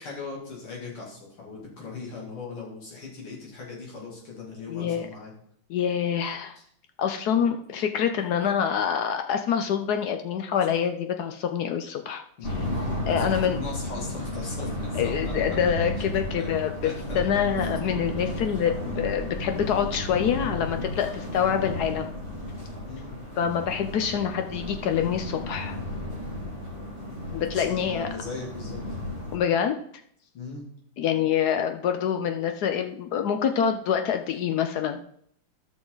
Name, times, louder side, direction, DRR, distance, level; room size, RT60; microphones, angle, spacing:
voice 1, 0.0-5.3 12.4-15.3 16.4-16.5 16.8-17.2 22.8-23.2 27.5-29.0 30.3-30.7, left 4 dB, 90° left, -4 dB, 3.5 m, -39 dB
voice 2, 4.7-5.1 5.7-6.5 7.0-12.2 13.1-13.6 14.9-22.1 23.4-25.8 27.3-28.1 29.3-29.7 31.0-35.0, left 8 dB, 75° left, 6 dB, 0.9 m, -26 dB
sound 1, 12.4-29.4, left 1 dB, 30° left, 2.7 m, -33 dB
12.5 x 6.3 x 3.9 m, 0.66 s
omnidirectional pair, 2.3 m